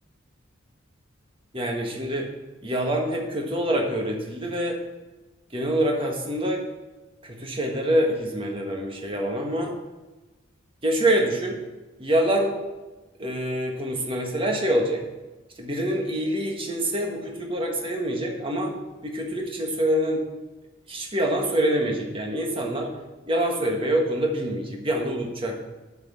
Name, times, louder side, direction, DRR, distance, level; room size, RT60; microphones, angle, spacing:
voice 1, 1.5-2.3 2.6-4.8 5.5-6.6 7.2-9.7 10.8-11.6 12.0-12.5 13.2-15.0 15.6-18.7 19.0-20.2 20.9-22.9 23.3-25.5, right 1 dB, 25° right, 1 dB, 1.6 m, -25 dB
8.3 x 6.2 x 7.4 m, 1.1 s
head